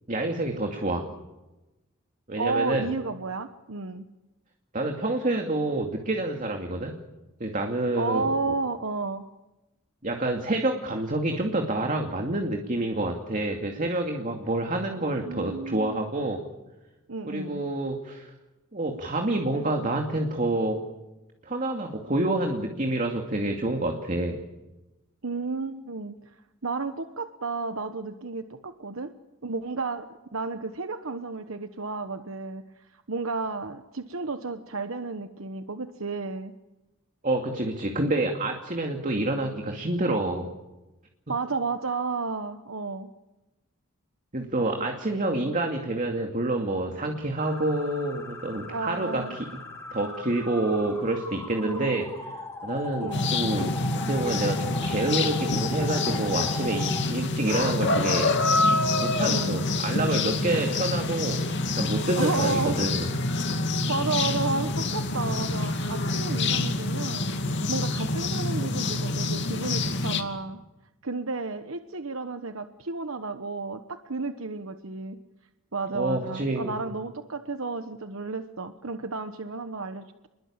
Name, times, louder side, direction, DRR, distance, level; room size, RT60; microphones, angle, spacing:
voice 1, 0.1-1.1 2.3-2.9 4.7-7.0 7.4-8.5 10.0-16.4 17.3-18.3 18.7-20.8 21.4-24.4 37.2-40.5 44.3-49.5 49.9-52.1 52.6-58.4 59.0-63.1 75.9-76.8, right 2 dB, 40° right, 3 dB, 2.5 m, -28 dB
voice 2, 2.4-4.0 7.9-9.3 15.2-16.1 17.1-17.6 25.2-26.4 26.6-29.1 29.4-36.5 41.3-43.1 48.7-49.4 51.6-52.0 53.0-53.3 59.2-59.6 62.2-62.8 63.9-70.6 71.0-75.2 75.7-80.3, right 3 dB, 70° right, 9 dB, 1.2 m, -32 dB
sound 1, 47.4-57.0, left 3 dB, 15° left, 5.6 m, -38 dB
sound 2, 53.1-70.2, left 2 dB, 55° left, 2.7 m, -27 dB
29.5 x 21.5 x 8.9 m, 1.1 s
head